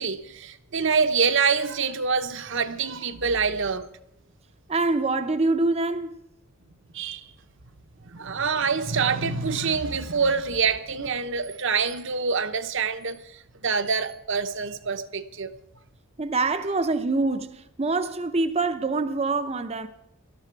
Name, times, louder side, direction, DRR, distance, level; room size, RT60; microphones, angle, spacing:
voice 1, 0.0-3.9 6.9-7.3 8.0-15.5, right 5 dB, 55° right, 1.0 m, -26 dB
voice 2, 4.7-6.2 16.2-19.9, right 3 dB, 30° right, 0.7 m, -25 dB
19.0 x 13.0 x 4.6 m
head